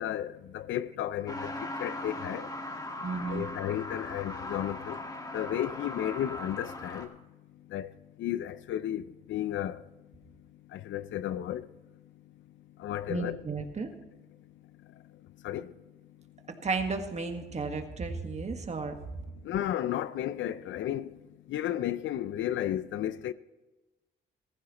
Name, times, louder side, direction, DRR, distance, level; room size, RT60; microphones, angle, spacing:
voice 1, 0.0-2.5 3.2-5.0 5.3-7.1 7.7-7.9 8.2-9.8 10.7-11.7 12.8-13.5 15.4-15.7 19.4-21.1 21.5-23.3, left 11 dB, 75° left, 0.6 m, -33 dB
Truck, 1.3-7.1, left 1 dB, 20° left, 1.8 m, -39 dB
voice 2, 3.0-3.5 13.1-13.9 16.6-19.0, right 4 dB, 35° right, 1.6 m, -33 dB
15.0 x 14.5 x 3.1 m
cardioid pair, 90°, 20 cm